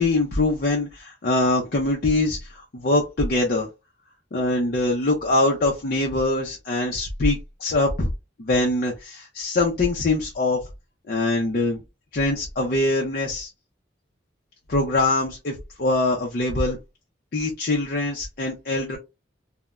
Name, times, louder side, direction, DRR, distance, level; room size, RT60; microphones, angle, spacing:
voice 1, 0.0-3.7 4.3-8.1 8.4-10.6 11.1-11.8 12.1-13.5 14.7-16.8 17.3-19.0, left 2 dB, 50° left, 0 dB, 0.5 m, -23 dB
3.1 x 2.1 x 2.3 m, 0.24 s
head